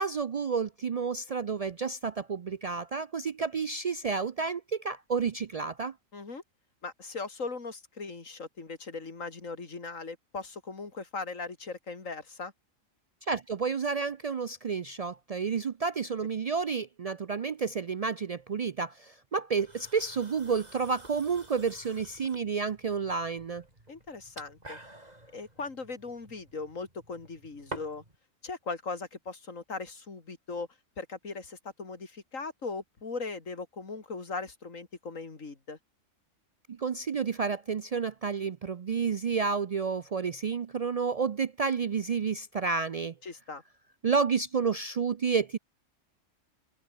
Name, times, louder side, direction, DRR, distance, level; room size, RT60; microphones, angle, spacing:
voice 1, 0.0-5.9 13.3-23.6 36.7-43.1 44.0-45.6, right 5 dB, 75° right, 0.3 m, -30 dB
voice 2, 6.1-6.4 6.8-12.5 23.9-24.8 25.3-28.0 28.4-30.7 31.0-35.8 43.2-43.6, left 4 dB, 75° left, 3.2 m, -39 dB
sound 1, 19.6-28.2, right 1 dB, 30° right, 5.1 m, -49 dB
omnidirectional pair, 1.4 m